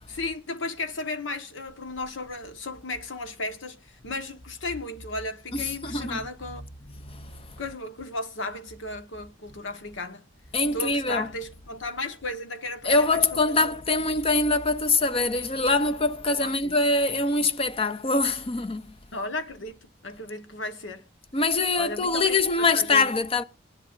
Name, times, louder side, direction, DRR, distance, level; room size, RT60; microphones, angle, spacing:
voice 1, 0.1-6.6 7.6-10.3 10.7-13.7 14.1-14.2 16.4-16.7 19.1-21.0 21.8-23.1, left 2 dB, 85° left, 1.4 m, -35 dB
voice 2, 5.5-6.2 7.1-7.2 10.5-11.3 12.8-18.8 21.3-23.4, left 3 dB, 30° left, 0.6 m, -24 dB
18.5 x 11.0 x 2.6 m
head